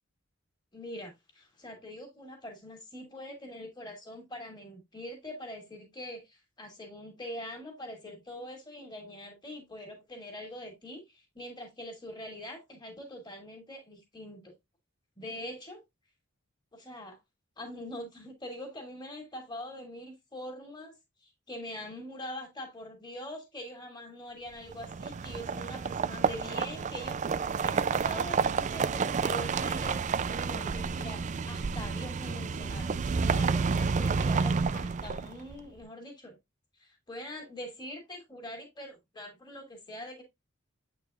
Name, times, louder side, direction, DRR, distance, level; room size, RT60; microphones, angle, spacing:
voice 1, 0.7-14.5 15.2-15.8 16.7-17.2 17.6-20.9 21.2-33.0 33.2-36.4 36.8-40.2, left 1 dB, 20° left, 2.7 m, -43 dB
sound 1, 24.7-35.5, right 5 dB, 35° right, 0.4 m, -30 dB
8.5 x 4.7 x 2.4 m
head